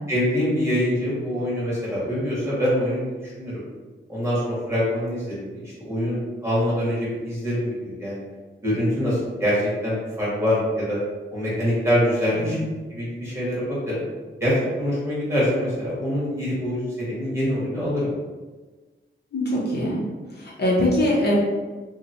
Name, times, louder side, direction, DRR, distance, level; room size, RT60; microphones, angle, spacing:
voice 1, 0.1-3.6 4.1-8.2 8.6-11.0 11.3-12.6 12.9-14.0 14.4-18.2, equal, 15° right, -8 dB, 1.4 m, -24 dB
voice 2, 19.3-20.0 20.3-21.3, left 1 dB, 55° left, -6 dB, 0.8 m, -22 dB
2.9 x 2.2 x 2.6 m, 1.3 s
wide cardioid pair, 95°, 20 cm